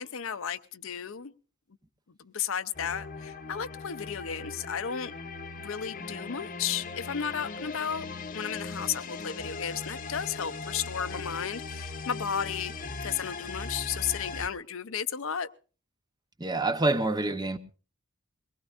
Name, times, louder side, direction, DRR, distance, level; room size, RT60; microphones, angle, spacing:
voice 1, 0.0-1.3 2.2-5.1 5.6-8.1 8.3-15.5, left 8 dB, 65° left, 0.6 m, -33 dB
sound 1, 2.7-14.5, left 4 dB, 40° left, 0.8 m, -39 dB
voice 2, 16.4-17.6, right 2 dB, 20° right, 0.8 m, -27 dB
22.5 x 19.5 x 2.5 m
head